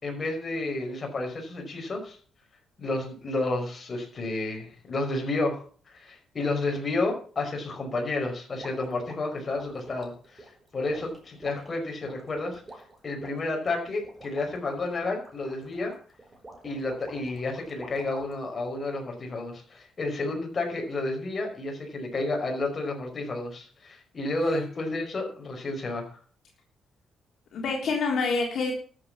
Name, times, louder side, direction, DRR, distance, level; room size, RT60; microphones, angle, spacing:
voice 1, 0.0-2.2 2.8-12.6 13.0-15.9 16.6-26.2, left 2 dB, 30° left, 2 dB, 5.4 m, -31 dB
sound 1, 8.6-18.5, right 2 dB, 15° right, 4.2 m, -48 dB
voice 2, 24.3-25.0 27.5-28.7, left 4 dB, 60° left, -1 dB, 3.5 m, -28 dB
13.5 x 8.0 x 7.3 m, 0.43 s
cardioid pair, 120°, 0 cm